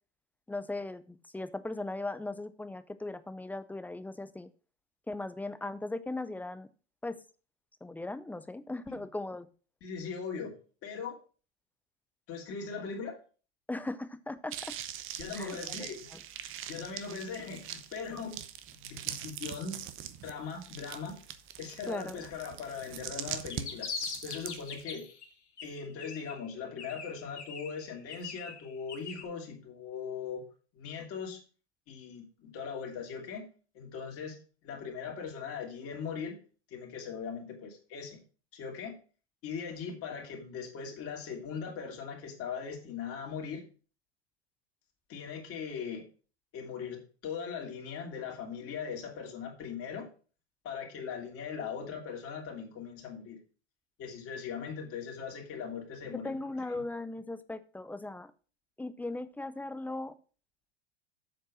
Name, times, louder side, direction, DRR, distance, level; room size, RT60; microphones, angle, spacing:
voice 1, 0.5-4.5 5.1-6.7 7.0-7.2 7.8-9.5 13.7-14.7 15.3-16.2 21.9-22.2 56.2-58.3 58.8-60.1, left 2 dB, 5° left, 13 dB, 0.4 m, -38 dB
voice 2, 9.8-10.5 10.8-11.2 12.3-13.2 15.2-16.1 16.5-18.4 18.8-19.8 20.2-21.2 21.6-23.9 24.2-25.0 25.6-30.4 30.7-31.4 31.9-33.5 33.7-34.4 34.6-36.4 36.7-38.2 38.5-39.0 39.4-43.6 45.1-46.0 46.5-50.1 50.6-53.4 54.0-56.8, left 6 dB, 40° left, 0 dB, 3.0 m, -40 dB
sound 1, 14.5-24.8, right 11 dB, 40° right, 0.9 m, -42 dB
sound 2, 23.3-25.3 25.6-26.5 26.8-29.2, left 5 dB, 90° left, 1.8 m, -41 dB
7.6 x 4.4 x 6.1 m, 0.37 s
hypercardioid pair, 100°, 33 cm